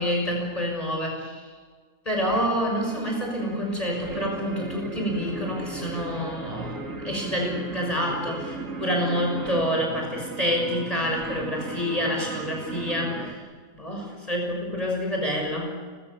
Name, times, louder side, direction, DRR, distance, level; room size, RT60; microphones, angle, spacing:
voice 1, 0.0-1.5 2.0-13.4 13.7-15.7, equal, 25° left, 0 dB, 6.7 m, -28 dB
sound 1, 2.3-13.3, right 3 dB, 75° right, 2.9 m, -37 dB
29.5 x 25.5 x 7.2 m, 1.5 s
omnidirectional pair, 1.4 m